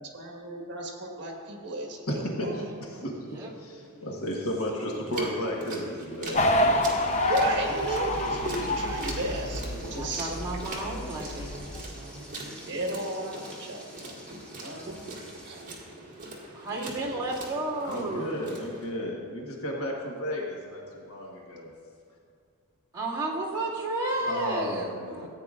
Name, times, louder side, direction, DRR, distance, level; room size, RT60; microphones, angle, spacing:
voice 1, 0.0-2.0 2.4-3.0 3.4-3.8 7.3-10.3 12.7-13.8 14.3-15.0 15.4-15.6, right 1 dB, 55° right, 0 dB, 1.6 m, -34 dB
voice 2, 2.1-3.2 3.6-6.8 15.0-15.1 17.8-21.7 24.2-25.3, equal, 70° left, -2 dB, 1.4 m, -33 dB
sound 1, 5.1-18.9, right 2 dB, 35° right, 1.8 m, -42 dB
sound 2, 6.3-11.8, left 1 dB, 30° left, 0.7 m, -28 dB
Frying (food), 6.5-15.6, equal, 5° left, 2.1 m, -50 dB
voice 3, 9.9-13.0 16.5-18.5 22.9-25.3, right 2 dB, 20° right, -9 dB, 2.2 m, -33 dB
15.0 x 9.0 x 2.5 m, 2.3 s
head